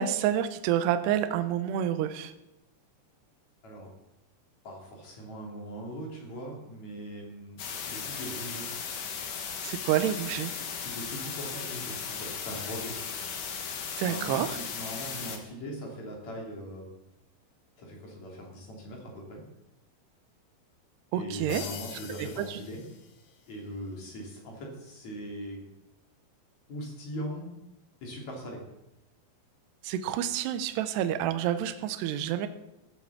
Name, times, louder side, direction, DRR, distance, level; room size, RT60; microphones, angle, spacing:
voice 1, 0.0-2.3 9.6-10.5 14.0-14.5 21.1-21.7 22.4-22.5 29.8-32.5, right 10 dB, 75° right, 9 dB, 2.6 m, -28 dB
voice 2, 4.6-7.6 7.9-8.7 10.7-13.0 14.0-16.9 17.8-19.4 21.1-22.8 23.5-25.6 26.7-27.5 28.0-28.6, equal, 40° left, -1 dB, 3.6 m, -40 dB
sound 1, 7.6-15.4, left 6 dB, 60° left, 2.3 m, -36 dB
sound 2, 21.5-23.6, left 6 dB, 90° left, 4.3 m, -43 dB
15.0 x 7.9 x 7.3 m, 0.91 s
omnidirectional pair, 5.6 m